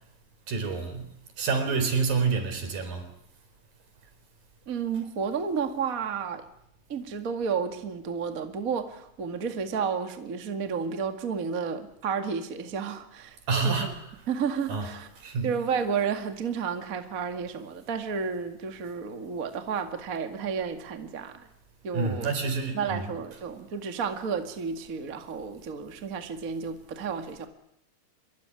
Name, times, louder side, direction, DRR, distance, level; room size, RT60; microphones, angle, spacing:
voice 1, 0.5-1.1 1.4-3.1 13.5-14.0 14.7-14.9 15.2-15.5 21.9-23.1, right 4 dB, 80° right, 6.0 m, -28 dB
voice 2, 4.7-6.4 6.9-13.4 13.6-13.9 14.3-15.1 15.4-21.5 21.8-22.3 22.7-27.5, right 6 dB, 30° right, 1.9 m, -31 dB
25.0 x 23.0 x 9.8 m
omnidirectional pair, 3.9 m